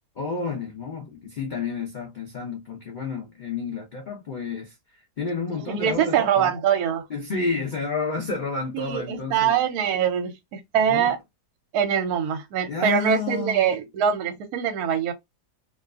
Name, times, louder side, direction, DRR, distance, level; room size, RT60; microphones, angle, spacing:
voice 1, 0.2-6.5 7.1-9.6 10.9-11.1 12.7-13.8, left 4 dB, 85° left, 0.4 m, -30 dB
voice 2, 5.6-7.0 8.7-11.2 11.7-15.1, right 8 dB, 70° right, 1.1 m, -23 dB
2.7 x 2.3 x 2.2 m
omnidirectional pair, 1.8 m